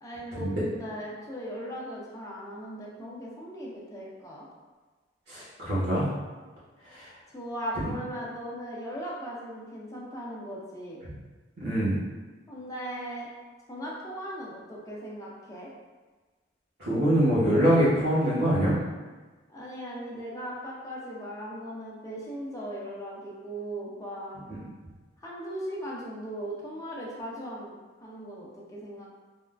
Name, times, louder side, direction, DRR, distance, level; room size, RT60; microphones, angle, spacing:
voice 1, 0.0-4.5 7.3-11.0 12.5-13.3 13.7-15.7 19.5-24.4 25.2-27.8 28.0-29.1, equal, 20° left, -5 dB, 0.6 m, -38 dB
voice 2, 5.3-6.1 6.9-7.1 7.8-7.9 11.6-12.0 16.8-18.7 24.5-24.6, equal, 60° right, -11 dB, 0.9 m, -24 dB
3.6 x 2.4 x 2.2 m, 1.3 s
head